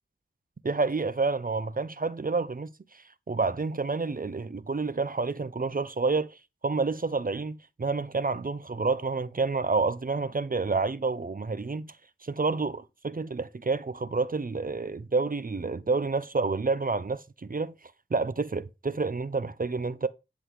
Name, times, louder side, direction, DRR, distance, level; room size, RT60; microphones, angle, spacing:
voice 1, 0.6-2.7 3.3-6.4 6.6-11.9 12.2-17.7 18.1-20.1, right 4 dB, 45° right, 0.7 m, -29 dB
11.5 x 3.9 x 6.4 m
wide cardioid pair, 65°, 20 cm